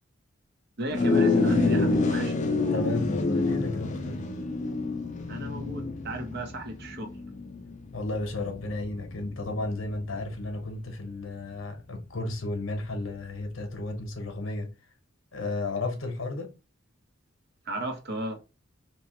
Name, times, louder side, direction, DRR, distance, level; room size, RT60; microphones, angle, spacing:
voice 1, 0.8-2.5 5.3-7.1 17.7-18.4, right 1 dB, 55° right, 0.7 m, -34 dB
sound 1, 0.9-10.5, left 3 dB, 35° left, 0.4 m, -28 dB
voice 2, 2.6-4.2 7.9-14.7 15.3-16.6, left 2 dB, 70° left, 0.8 m, -33 dB
2.9 x 2.2 x 2.9 m
head